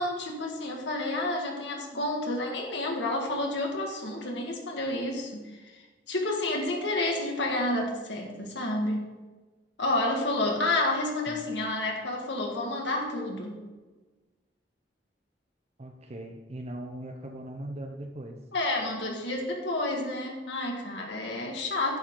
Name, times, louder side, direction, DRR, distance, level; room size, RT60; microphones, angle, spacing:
voice 1, 0.0-9.1 9.8-13.6 18.5-22.0, left 2 dB, 85° left, 0 dB, 1.8 m, -30 dB
voice 2, 15.8-18.4, right 1 dB, 40° right, 4 dB, 0.7 m, -40 dB
10.5 x 7.5 x 3.8 m, 1.2 s
head